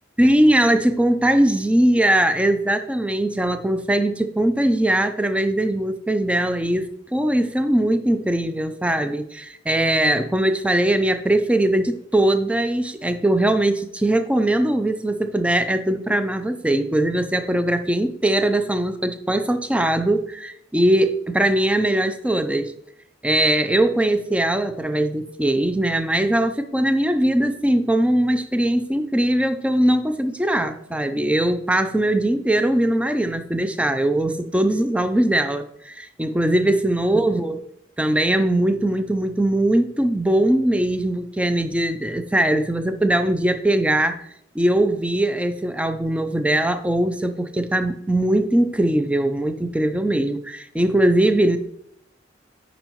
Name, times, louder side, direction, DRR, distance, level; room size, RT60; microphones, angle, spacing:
voice 1, 0.2-22.7 23.2-37.6 38.0-44.3 44.6-51.6, right 1 dB, 5° right, 0.3 m, -20 dB
8.9 x 5.2 x 3.0 m
head